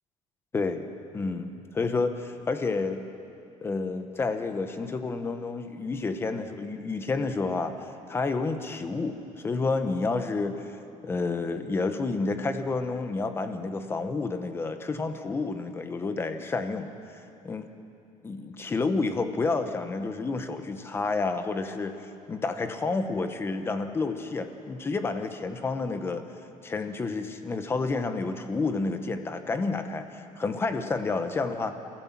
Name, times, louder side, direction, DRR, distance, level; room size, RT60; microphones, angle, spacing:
voice 1, 0.5-0.9 1.1-3.0 3.6-7.7 8.1-10.8 11.0-16.9 17.4-17.7 18.2-22.0 22.3-26.2 26.6-31.7, left 3 dB, 20° left, 8 dB, 1.0 m, -30 dB
27.5 x 15.0 x 7.5 m, 2.7 s
cardioid pair, 175°, 13 cm